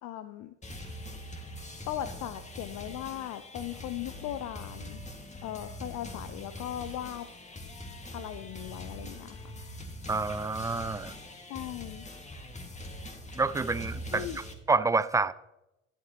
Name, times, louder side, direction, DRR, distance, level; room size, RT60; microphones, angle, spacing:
voice 1, 0.0-0.5 1.9-5.0 5.4-7.3 8.1-9.4 11.5-12.1 14.1-14.4, left 12 dB, 50° left, 0.7 m, -38 dB
sound 1, 0.6-14.5, left 1 dB, 20° left, 2.0 m, -43 dB
voice 2, 10.1-11.1 13.4-15.3, right 3 dB, 10° right, 0.3 m, -28 dB
12.5 x 11.0 x 3.0 m
figure-of-eight pair, 55°, 37 cm